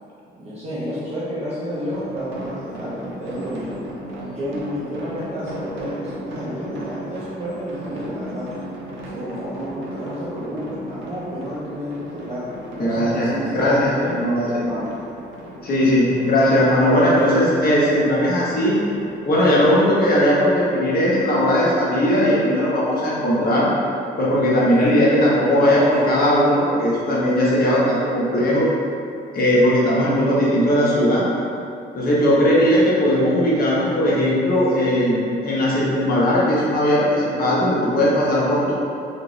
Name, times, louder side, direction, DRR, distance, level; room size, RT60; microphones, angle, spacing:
voice 1, 0.3-3.7 4.2-8.5 9.1-14.1 14.4-15.0 16.3-16.7 24.5-25.0 26.0-26.1, equal, 30° right, -11 dB, 0.7 m, -31 dB
sound 1, 1.9-19.2, right 1 dB, 75° right, 0.5 m, -36 dB
voice 2, 12.8-14.5 15.6-18.8 19.2-23.7 24.2-28.7 29.3-31.2 31.9-38.7, equal, 50° left, -6 dB, 0.8 m, -18 dB
2.5 x 2.3 x 3.0 m, 2.6 s
cardioid pair, 90°, 20 cm